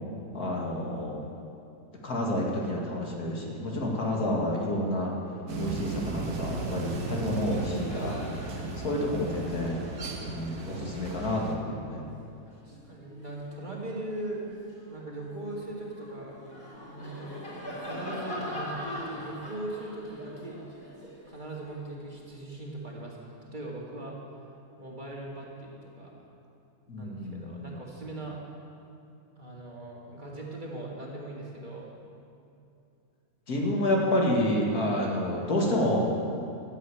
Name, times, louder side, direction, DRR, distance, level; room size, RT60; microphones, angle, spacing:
voice 1, 0.3-1.2 2.0-5.1 5.6-9.8 10.3-12.0 26.9-27.7 33.5-36.1, left 1 dB, 85° left, -2 dB, 2.6 m, -29 dB
sound 1, 5.5-11.6, right 3 dB, 85° right, 1.8 m, -35 dB
Laughter, 6.7-6.8 7.0-13.7 14.3-22.4, equal, 40° left, 3.8 m, -43 dB
voice 2, 12.5-14.4 14.9-16.4 16.8-17.3 17.8-20.6 21.3-24.2 24.8-26.2 27.0-28.4 29.4-31.9, right 1 dB, 30° right, -3 dB, 2.2 m, -39 dB
13.5 x 8.1 x 8.6 m, 2.7 s
omnidirectional pair, 1.6 m